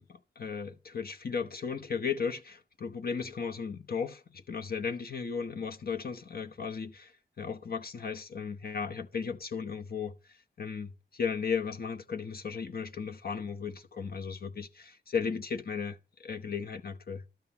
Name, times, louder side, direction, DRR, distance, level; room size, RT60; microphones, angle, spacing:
voice 1, 0.0-17.2, left 6 dB, 55° left, 1.0 m, -36 dB
13.0 x 7.9 x 4.0 m
wide cardioid pair, 125°, 19 cm